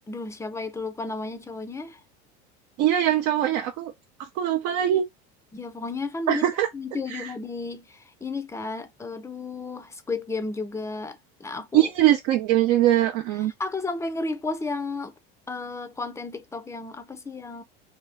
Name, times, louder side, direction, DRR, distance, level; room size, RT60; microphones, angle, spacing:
voice 1, 0.1-2.0 5.5-6.4 6.7-11.9 13.4-15.1 15.5-17.6, left 3 dB, 10° left, 0.5 m, -33 dB
voice 2, 2.8-3.9 4.4-5.1 6.3-6.7 7.1-7.3 11.7-13.5, right 12 dB, 60° right, 0.6 m, -22 dB
2.8 x 2.3 x 3.4 m
supercardioid pair, 95°, 30 cm